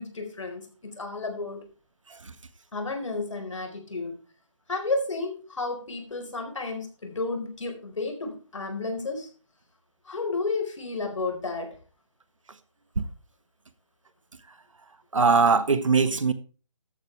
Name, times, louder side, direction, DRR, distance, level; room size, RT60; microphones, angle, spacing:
voice 1, 0.0-1.6 2.7-4.2 4.7-9.3 10.1-11.7, left 3 dB, 70° left, 4.5 m, -32 dB
voice 2, 15.1-16.3, right 4 dB, 75° right, 1.5 m, -21 dB
13.0 x 10.5 x 3.4 m
figure-of-eight pair, 160°, 16 cm